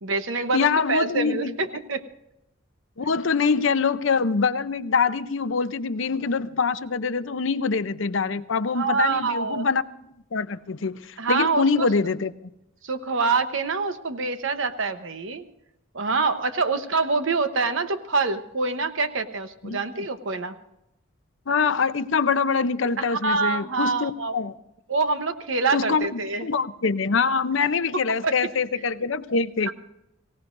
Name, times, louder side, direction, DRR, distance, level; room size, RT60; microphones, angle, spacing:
voice 1, 0.0-2.0 8.7-9.6 11.2-11.9 12.8-15.4 15.9-20.5 23.0-24.4 24.9-26.5 27.9-28.4 29.7-29.8, right 4 dB, 70° right, 9 dB, 1.0 m, -25 dB
voice 2, 0.5-1.5 3.0-9.8 10.3-12.3 19.6-20.0 21.5-24.5 25.7-29.7, left 5 dB, 65° left, 12 dB, 0.7 m, -24 dB
24.0 x 17.0 x 2.6 m, 0.85 s
head